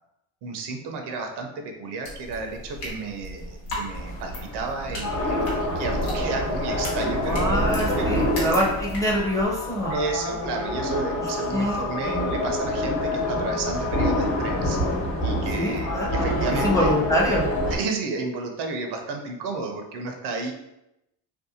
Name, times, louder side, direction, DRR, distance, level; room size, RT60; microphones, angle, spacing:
voice 1, 0.4-7.5 8.0-8.3 9.9-14.8 15.2-16.9 17.7-20.5, right 3 dB, 75° right, 4 dB, 0.6 m, -32 dB
sound 1, 2.0-9.5, equal, 90° left, 1.0 m, -37 dB
sound 2, 3.9-17.8, equal, 35° left, 0.9 m, -28 dB
sound 3, 5.0-17.7, left 2 dB, 65° left, 0.8 m, -31 dB
voice 2, 7.2-10.0 11.2-12.3 15.5-17.5, equal, 10° left, -4 dB, 0.5 m, -25 dB
2.6 x 2.1 x 2.7 m, 0.87 s
cardioid pair, 125°, 41 cm